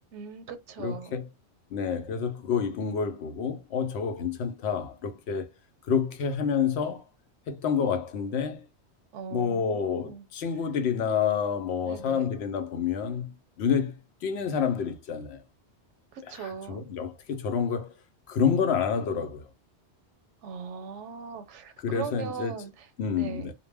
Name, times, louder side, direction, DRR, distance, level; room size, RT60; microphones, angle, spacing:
voice 1, 0.1-1.2 9.1-10.3 11.8-12.3 16.1-16.8 20.4-23.5, right 6 dB, 85° right, 0.9 m, -39 dB
voice 2, 0.8-1.3 1.7-5.5 5.9-7.1 7.5-8.7 9.3-15.4 16.2-17.9 18.3-19.5 21.8-22.7 23.0-23.5, left 6 dB, 70° left, 0.8 m, -28 dB
2.1 x 2.1 x 3.3 m
omnidirectional pair, 1.2 m